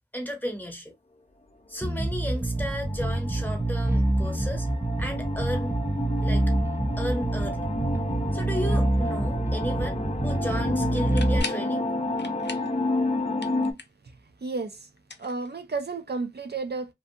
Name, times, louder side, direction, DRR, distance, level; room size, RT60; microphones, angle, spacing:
voice 1, 0.1-0.9 1.7-4.7 5.0-5.8 6.2-6.4 7.0-7.7 8.3-11.9, equal, 10° left, 0.9 m, -34 dB
Bass guitar, 1.8-11.4, right 1 dB, 15° right, 0.4 m, -26 dB
sound 1, 2.4-13.7, left 2 dB, 40° left, 0.6 m, -31 dB
sound 2, 10.9-11.7 12.2-12.8 13.1-14.1 15.0-15.9, left 3 dB, 75° left, 0.6 m, -39 dB
voice 2, 14.4-14.9 15.2-16.9, right 4 dB, 70° right, 0.5 m, -32 dB
2.6 x 2.3 x 2.6 m
wide cardioid pair, 45°, 18 cm